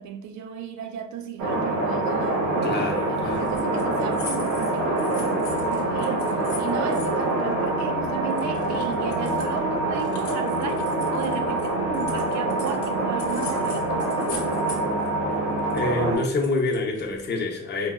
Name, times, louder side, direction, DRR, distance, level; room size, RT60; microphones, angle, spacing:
voice 1, 0.0-2.8 3.1-6.3 6.6-14.6, right 7 dB, 70° right, 0.5 m, -35 dB
sound 1, 1.4-16.2, right 2 dB, 85° right, 0.9 m, -25 dB
voice 2, 2.6-3.5 15.7-17.9, left 3 dB, 35° left, 0.7 m, -27 dB
sound 2, 3.3-8.0 8.3-12.9 13.2-15.1 15.4-17.3, left 4 dB, 80° left, 0.8 m, -42 dB
3.9 x 2.0 x 2.3 m
cardioid pair, 90°, 30 cm